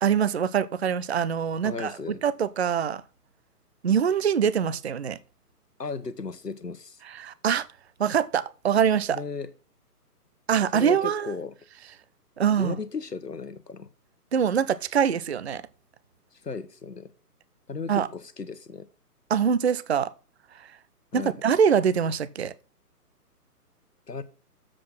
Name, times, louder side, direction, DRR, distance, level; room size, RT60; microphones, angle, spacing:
voice 1, 0.0-3.0 3.8-5.2 7.0-7.7 8.0-9.2 10.5-11.3 12.4-12.7 14.3-15.6 17.9-18.1 19.3-20.1 20.5-20.7 21.1-22.5, right 7 dB, 45° right, 0.5 m, -24 dB
voice 2, 1.6-2.2 5.8-7.0 9.1-9.5 10.7-11.5 12.6-13.9 16.4-17.1 17.7-18.9 21.1-21.4 24.1-24.2, left 4 dB, 85° left, 1.1 m, -35 dB
7.6 x 6.3 x 5.8 m
figure-of-eight pair, 135°, 47 cm